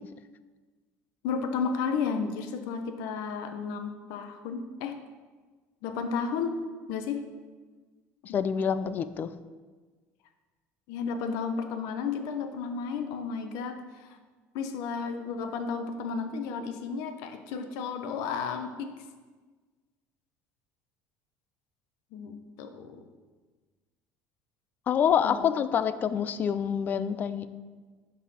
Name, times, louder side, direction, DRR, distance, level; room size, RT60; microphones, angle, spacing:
voice 1, 1.2-5.0 5.8-6.6 6.9-7.2 8.3-8.6 10.9-14.2 14.5-18.9 22.1-23.0 25.2-25.5, left 5 dB, 75° left, 7 dB, 0.8 m, -33 dB
voice 2, 8.3-9.3 24.9-27.5, left 8 dB, 30° left, 13 dB, 0.3 m, -26 dB
11.0 x 3.9 x 4.2 m, 1.4 s
cardioid pair, 150°, 6 cm